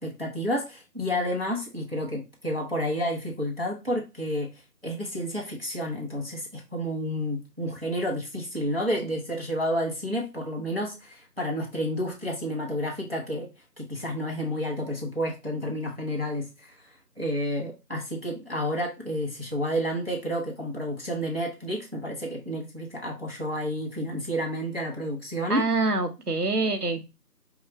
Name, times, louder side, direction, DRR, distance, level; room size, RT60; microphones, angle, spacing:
voice 1, 0.0-4.5 4.8-13.5 13.8-25.7, equal, 35° right, 0.9 m, -30 dB
voice 2, 25.5-27.1, right 3 dB, 65° right, 0.9 m, -26 dB
5.6 x 2.4 x 3.1 m
figure-of-eight pair, 175°, 49 cm